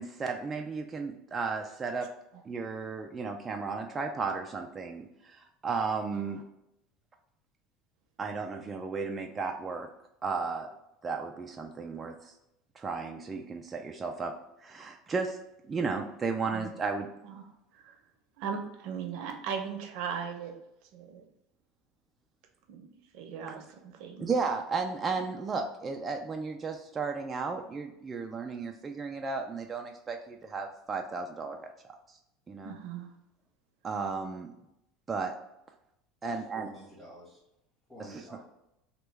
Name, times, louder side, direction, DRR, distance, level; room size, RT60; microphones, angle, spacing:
voice 1, 0.0-2.1 2.5-6.4 8.2-9.9 10.2-10.7 11.0-12.3 12.8-14.3 14.6-15.4 15.7-17.1 24.2-31.6 32.5-32.7 33.8-34.5 35.1-35.3 36.2-36.7 38.0-38.2, right 4 dB, 25° right, 3 dB, 0.3 m, -34 dB
voice 2, 18.4-20.5 20.9-21.2 22.7-22.8 23.1-24.3 25.5-25.6 32.6-33.1, right 6 dB, 65° right, 4 dB, 0.6 m, -38 dB
voice 3, 36.2-37.4 37.9-38.5, left 1 dB, 5° left, -7 dB, 1.3 m, -50 dB
3.0 x 2.2 x 3.3 m, 0.85 s
supercardioid pair, 115°, 0 cm